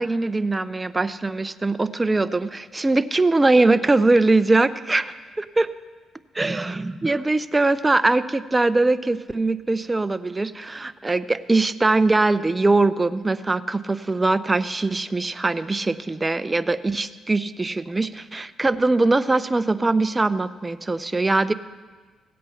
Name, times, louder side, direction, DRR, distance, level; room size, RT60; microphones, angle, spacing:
voice 1, 0.0-5.7 6.3-21.5, right 2 dB, 20° right, 13 dB, 0.5 m, -21 dB
16.5 x 8.5 x 5.7 m, 1.4 s
cardioid pair, 90°, 0 cm